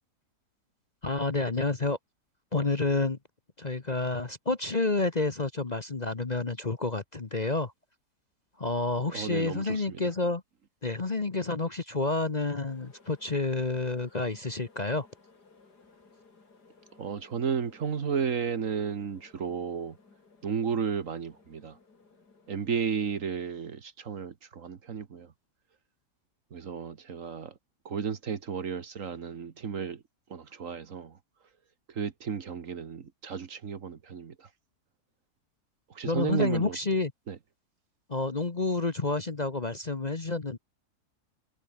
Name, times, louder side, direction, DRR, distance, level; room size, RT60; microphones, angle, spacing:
voice 1, 1.0-2.0 2.5-3.2 3.6-7.7 8.6-10.4 10.8-15.1 36.0-37.1 38.1-40.6, left 3 dB, 30° left, 1.2 m, -29 dB
voice 2, 9.1-10.0 17.0-20.0 20.4-21.8 22.5-25.3 26.5-27.5 27.8-30.0 30.3-31.2 31.9-34.5 35.9-36.8 37.3-37.4, right 6 dB, 55° right, 1.6 m, -33 dB
sound 1, 12.6-23.2, left 4 dB, 85° left, 4.0 m, -60 dB
omnidirectional pair, 1.7 m